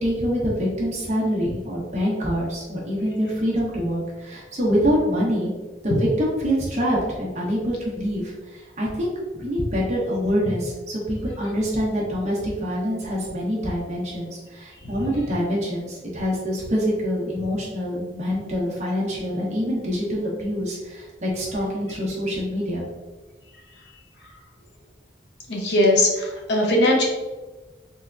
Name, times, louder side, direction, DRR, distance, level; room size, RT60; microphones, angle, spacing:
voice 1, 0.0-5.5 5.8-8.3 8.8-22.8, equal, 40° right, -5 dB, 1.1 m, -25 dB
voice 2, 25.5-27.0, left 1 dB, 70° left, 0 dB, 0.8 m, -19 dB
3.6 x 3.4 x 2.6 m, 1.3 s
head